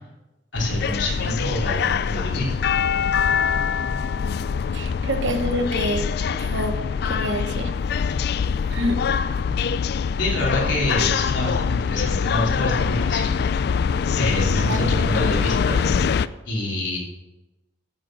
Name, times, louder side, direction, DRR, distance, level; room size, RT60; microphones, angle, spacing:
voice 1, 0.5-2.6 9.6-13.4 14.2-16.2 16.4-17.0, left 1 dB, 75° left, -3 dB, 3.1 m, -27 dB
sound 1, 0.6-16.3, left 6 dB, 55° left, 0.3 m, -23 dB
voice 2, 4.7-6.1 6.4-6.8 7.0-7.7 8.7-9.0 14.7-15.2, equal, 75° right, 7 dB, 1.1 m, -27 dB
9.3 x 6.7 x 6.1 m, 1.0 s
head